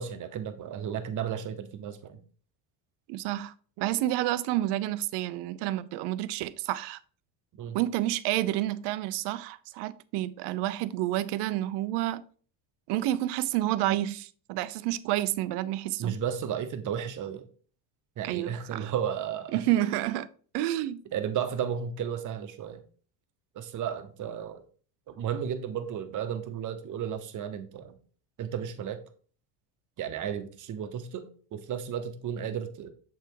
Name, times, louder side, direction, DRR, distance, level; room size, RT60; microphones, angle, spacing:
voice 1, 0.0-2.2 7.6-7.8 16.0-17.5 18.2-19.6 21.1-22.8 23.5-24.6 25.1-27.9 28.4-29.0 30.0-32.9, right 8 dB, 40° right, 1.0 m, -33 dB
voice 2, 3.1-7.0 7.7-12.2 12.9-16.2 18.2-18.9 19.5-20.3 20.5-21.0, right 14 dB, 65° right, 0.6 m, -29 dB
7.2 x 3.5 x 4.6 m
cardioid pair, 120°, 45 cm